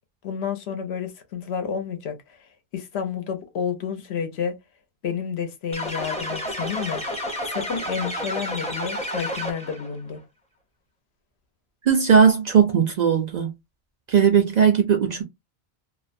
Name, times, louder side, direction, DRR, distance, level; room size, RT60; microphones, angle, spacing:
voice 1, 0.2-4.5 5.0-7.0 7.5-10.2, left 7 dB, 75° left, 0.9 m, -30 dB
sound 1, 5.7-9.9, equal, 10° left, 0.5 m, -30 dB
voice 2, 11.8-13.5 14.1-15.2, right 7 dB, 55° right, 0.5 m, -18 dB
2.4 x 2.1 x 2.5 m
omnidirectional pair, 1.1 m